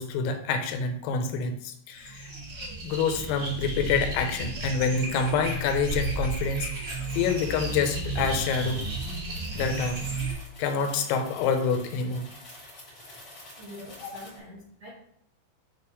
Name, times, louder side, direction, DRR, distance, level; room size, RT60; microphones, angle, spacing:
voice 1, 0.0-2.3 2.8-8.9 9.5-10.0 10.6-12.3 14.0-14.1, left 5 dB, 90° left, 6 dB, 3.5 m, -27 dB
sound 1, 1.9-10.3, right 2 dB, 40° right, 1.8 m, -33 dB
sound 2, 6.9-14.4, left 1 dB, 55° left, 1.1 m, -48 dB
voice 2, 13.6-14.9, left 1 dB, 65° right, -7 dB, 1.9 m, -45 dB
9.2 x 3.2 x 4.8 m, 0.70 s
omnidirectional pair, 5.8 m